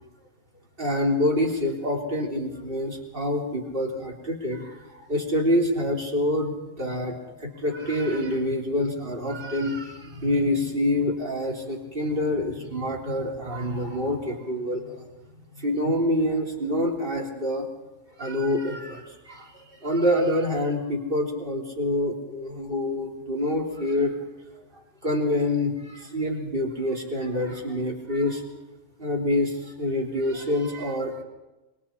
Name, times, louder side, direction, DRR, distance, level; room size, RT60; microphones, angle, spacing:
voice 1, 0.8-15.1 15.5-17.7 18.2-24.1 25.0-28.4 29.0-31.2, left 1 dB, 30° right, 0 dB, 3.3 m, -26 dB
25.0 x 24.0 x 4.4 m, 1.1 s
omnidirectional pair, 1.8 m